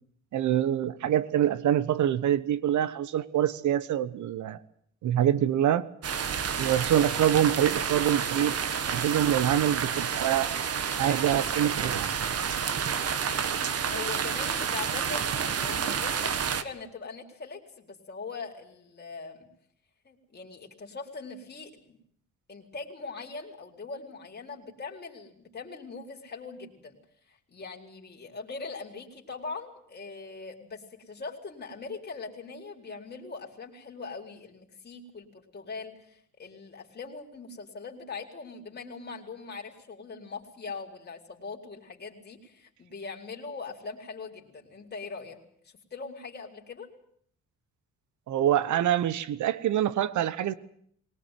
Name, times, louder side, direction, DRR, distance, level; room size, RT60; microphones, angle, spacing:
voice 1, 0.3-4.6 5.0-5.9 6.6-8.6 8.9-10.5 11.0-12.1 48.3-50.5, right 11 dB, 75° right, 17 dB, 1.2 m, -25 dB
sound 1, 6.0-16.6, right 7 dB, 55° right, 1.7 m, -29 dB
voice 2, 13.9-19.5 20.0-22.0 22.5-27.0 27.3-45.4 45.6-46.9, left 4 dB, 35° left, 1 dB, 4.2 m, -41 dB
21.0 x 19.0 x 9.2 m, 0.65 s
cardioid pair, 90°, 30 cm